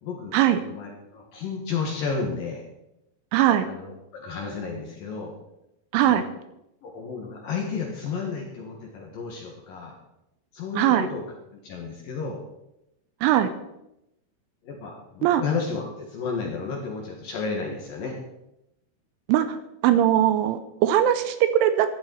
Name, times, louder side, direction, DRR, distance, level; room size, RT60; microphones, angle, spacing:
voice 1, 0.0-2.6 3.6-5.3 6.0-6.2 6.8-10.0 10.5-11.2 11.6-12.4 14.6-18.2, left 5 dB, 65° left, 1 dB, 2.5 m, -32 dB
voice 2, 3.3-3.7 5.9-6.3 10.8-11.1 13.2-13.5 15.2-15.4 19.3-19.6 19.8-21.9, right 11 dB, 80° right, 11 dB, 3.0 m, -20 dB
14.0 x 10.5 x 4.5 m, 0.87 s
omnidirectional pair, 5.8 m